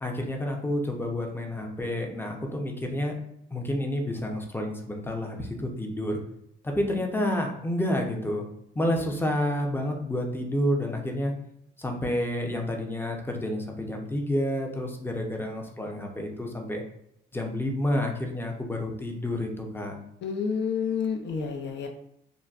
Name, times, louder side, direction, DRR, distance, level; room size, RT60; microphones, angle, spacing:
voice 1, 0.0-3.1 3.5-6.2 6.6-8.5 8.7-11.3 11.8-16.8 17.3-20.0, left 1 dB, 10° left, 2 dB, 0.6 m, -29 dB
voice 2, 20.2-21.9, left 6 dB, 65° left, 2 dB, 0.7 m, -29 dB
3.9 x 2.2 x 2.4 m, 0.76 s
cardioid pair, 90°, 20 cm